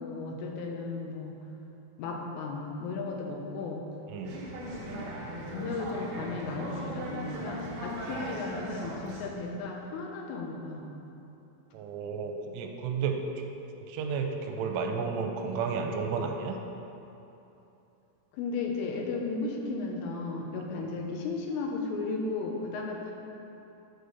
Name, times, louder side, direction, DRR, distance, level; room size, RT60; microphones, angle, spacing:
voice 1, 0.0-1.4 2.0-3.8 4.8-4.9 5.3-10.9 18.3-23.1, left 3 dB, 90° left, 1 dB, 3.5 m, -35 dB
voice 2, 4.1-4.4 8.1-8.4 11.7-13.2 13.9-16.6 20.7-20.8, right 5 dB, 85° right, 4 dB, 3.2 m, -32 dB
sound 1, 4.2-9.3, right 1 dB, 65° right, 2.4 m, -39 dB
8.2 x 6.5 x 6.8 m, 2.9 s
omnidirectional pair, 5.7 m